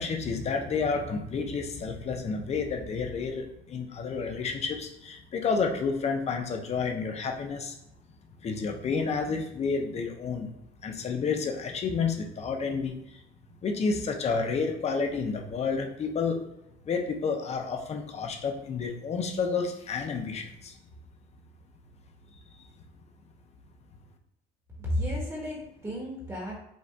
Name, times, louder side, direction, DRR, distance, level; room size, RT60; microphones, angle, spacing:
voice 1, 0.0-7.7 8.4-10.5 10.8-13.2 13.6-16.4 16.9-20.7, left 5 dB, 40° left, 3 dB, 0.7 m, -30 dB
voice 2, 24.8-26.6, equal, 15° right, -4 dB, 1.5 m, -32 dB
5.2 x 2.5 x 3.4 m, 0.81 s
cardioid pair, 110°, 17 cm